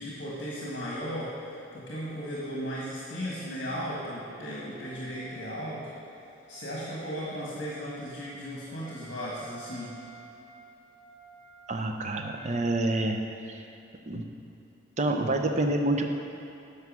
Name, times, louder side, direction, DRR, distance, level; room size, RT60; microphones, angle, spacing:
voice 1, 0.0-5.9 6.5-9.9, equal, 70° left, -5 dB, 1.5 m, -36 dB
Wind instrument woodwind instrument, 2.7-12.8, right 3 dB, 25° left, 1.1 m, -53 dB
voice 2, 11.7-13.2 13.5-13.6 14.1-14.2 15.0-16.1, right 2 dB, 35° right, 4 dB, 0.6 m, -27 dB
9.4 x 5.6 x 6.1 m, 2.7 s
head